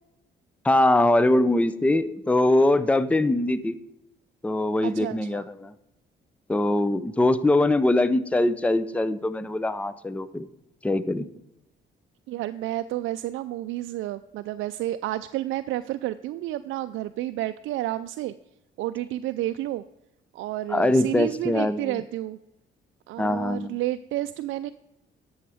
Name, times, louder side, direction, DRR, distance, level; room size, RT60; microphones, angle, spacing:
voice 1, 0.6-3.8 4.4-5.7 6.5-10.5 10.8-11.3 20.7-22.0 23.2-23.7, left 1 dB, 5° left, 15 dB, 0.5 m, -22 dB
voice 2, 4.8-5.4 12.3-18.3 18.8-19.8 20.3-22.4 23.1-24.7, right 14 dB, 85° right, 10 dB, 0.4 m, -30 dB
11.5 x 7.1 x 4.9 m, 0.90 s
cardioid pair, 90°, 20 cm